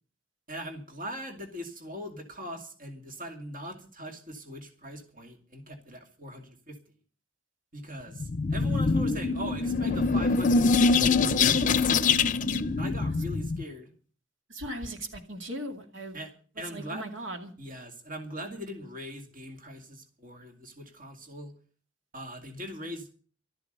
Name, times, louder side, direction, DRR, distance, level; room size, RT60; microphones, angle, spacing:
voice 1, 0.5-6.8 7.7-12.3 12.8-13.9 16.1-16.3 16.6-17.1 17.6-21.5 22.1-23.1, equal, 45° right, 4 dB, 2.4 m, -41 dB
sound 1, 8.2-13.6, left 4 dB, 45° left, 0.6 m, -24 dB
voice 2, 14.5-16.2 16.6-17.5, right 1 dB, 80° right, 4 dB, 2.5 m, -38 dB
13.0 x 13.0 x 6.7 m, 0.43 s
head